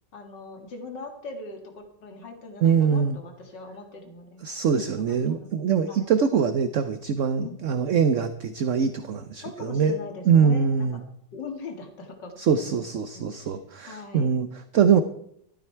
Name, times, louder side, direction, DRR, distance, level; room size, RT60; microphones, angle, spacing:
voice 1, 0.1-4.4 5.1-5.5 5.9-6.1 7.4-7.6 9.4-11.0 11.3-12.8 13.1-13.5 13.9-14.3, left 3 dB, 85° left, 4 dB, 2.7 m, -40 dB
voice 2, 2.6-3.2 4.4-9.9 10.3-11.0 12.4-15.0, right 6 dB, 55° right, 10 dB, 0.9 m, -23 dB
14.5 x 13.0 x 4.5 m, 0.69 s
omnidirectional pair, 1.9 m